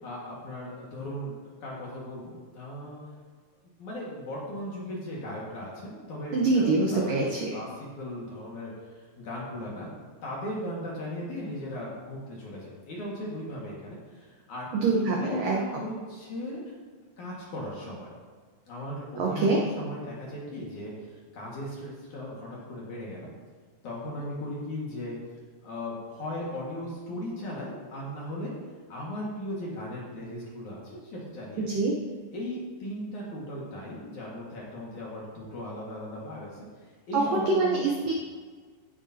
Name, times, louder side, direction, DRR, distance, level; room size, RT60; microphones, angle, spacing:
voice 1, 0.0-1.3 1.6-3.0 3.8-9.9 10.2-14.7 15.2-16.8 17.2-18.1 18.7-23.3 23.8-25.2 25.6-28.5 28.9-31.8 32.3-37.8, left 1 dB, 50° left, -4 dB, 2.6 m, -37 dB
voice 2, 6.3-7.5 14.7-15.8 19.2-19.6 31.6-31.9 37.1-38.1, right 3 dB, 85° right, -2 dB, 1.9 m, -25 dB
16.0 x 10.5 x 2.9 m, 1.5 s
omnidirectional pair, 5.5 m